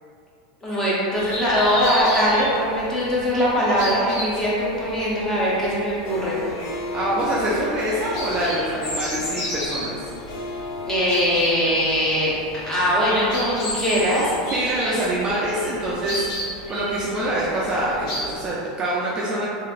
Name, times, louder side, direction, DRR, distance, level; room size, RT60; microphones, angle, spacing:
voice 1, 0.6-6.4 10.9-12.3 12.6-14.3 14.8-15.0, equal, 15° left, -7 dB, 0.7 m, -21 dB
sound 1, 1.1-18.5, equal, 75° left, 1.4 m, -33 dB
Harp, 6.0-13.6, left 3 dB, 50° left, 0.4 m, -35 dB
voice 2, 6.9-9.9 14.5-19.5, right 1 dB, 20° right, -6 dB, 0.3 m, -25 dB
3.0 x 2.5 x 2.4 m, 2.5 s
supercardioid pair, 145°, 4 cm